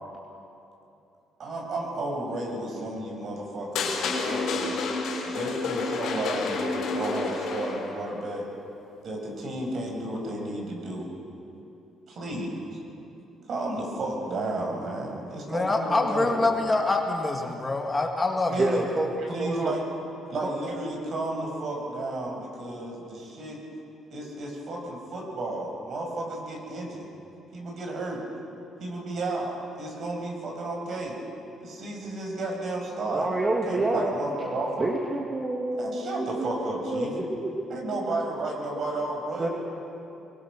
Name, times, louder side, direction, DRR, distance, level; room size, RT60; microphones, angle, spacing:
voice 1, 1.4-4.7 5.2-8.5 9.0-11.1 12.1-12.6 13.5-16.3 18.5-18.8 19.3-19.8 20.3-23.6 24.1-27.1 27.5-28.2 28.8-29.5 29.8-31.2 31.6-33.3 33.7-34.9 35.7-37.1 37.7-39.5, right 2 dB, 55° right, 0 dB, 5.9 m, -32 dB
sound 1, 3.7-8.0, left 3 dB, 75° left, 5.8 m, -29 dB
voice 2, 15.5-18.9, left 2 dB, 20° left, 1 dB, 2.2 m, -25 dB
voice 3, 18.6-19.1 19.4-19.7 20.4-20.5 33.0-34.1 34.8-36.6 36.8-37.6 39.4-39.5, right 2 dB, 25° right, 0 dB, 2.0 m, -28 dB
22.5 x 21.5 x 6.2 m, 2.8 s
cardioid pair, 100°, 0 cm